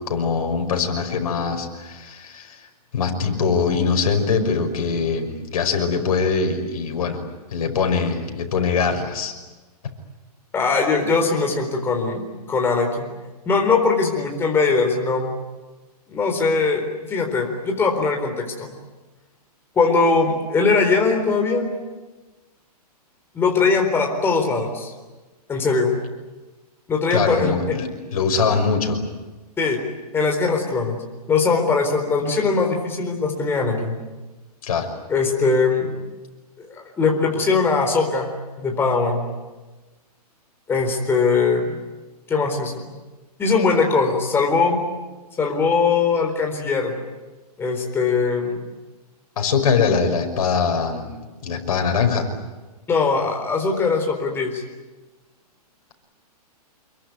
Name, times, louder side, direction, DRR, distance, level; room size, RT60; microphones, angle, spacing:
voice 1, 0.1-2.6 2.9-7.2 7.5-9.3 27.1-29.0 34.6-34.9 49.4-51.2 51.4-52.3, left 5 dB, 60° left, 5 dB, 5.7 m, -22 dB
voice 2, 10.5-13.1 13.5-15.3 16.1-18.7 19.8-21.7 23.3-24.9 25.5-25.9 26.9-27.5 29.6-29.8 30.1-31.0 31.3-33.9 35.1-36.0 36.6-36.7 37.0-38.3 38.6-39.2 40.7-41.8 42.3-42.8 43.4-44.8 45.4-46.9 47.6-48.6 52.9-54.6, left 4 dB, 10° left, 2 dB, 4.1 m, -21 dB
27.0 x 23.0 x 9.5 m, 1.2 s
hypercardioid pair, 155°, 20 cm